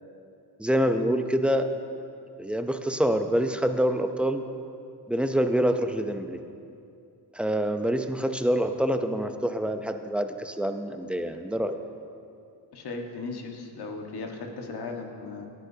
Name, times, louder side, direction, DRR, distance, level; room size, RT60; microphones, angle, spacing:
voice 1, 0.6-1.7 2.4-4.4 5.1-6.4 7.3-11.8, equal, ahead, 7 dB, 0.7 m, -26 dB
voice 2, 12.7-15.5, left 3 dB, 60° left, 2 dB, 1.7 m, -37 dB
17.5 x 11.0 x 2.9 m, 2.5 s
supercardioid pair, 65°, 44 cm